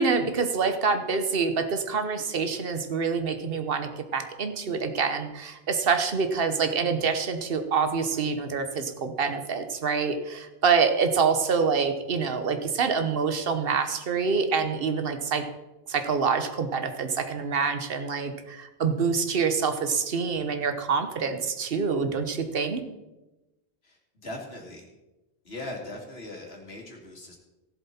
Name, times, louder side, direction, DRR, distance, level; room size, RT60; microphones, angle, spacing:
voice 1, 0.0-15.4 15.9-22.8, right 5 dB, 65° right, 8 dB, 1.3 m, -26 dB
voice 2, 23.8-24.9 25.4-27.4, left 1 dB, 85° left, 0 dB, 2.7 m, -40 dB
17.0 x 7.6 x 4.3 m, 1.0 s
omnidirectional pair, 1.0 m